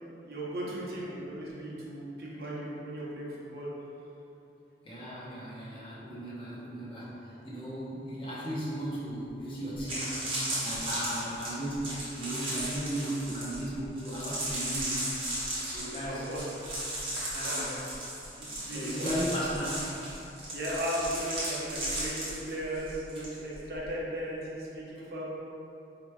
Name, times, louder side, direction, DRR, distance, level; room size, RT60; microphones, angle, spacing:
voice 1, 0.2-3.7 16.0-16.4 17.4-17.8 18.4-19.2 20.5-25.2, right 1 dB, 65° right, -5 dB, 0.7 m, -36 dB
voice 2, 4.8-10.4 10.6-15.1 15.7-16.5 17.1-17.7 18.5-19.9, equal, 30° left, -7 dB, 0.6 m, -36 dB
sound 1, 9.3-9.4 9.7-23.3 23.5-23.9, right 1 dB, 30° right, 0.9 m, -35 dB
4.4 x 2.9 x 2.2 m, 2.9 s
head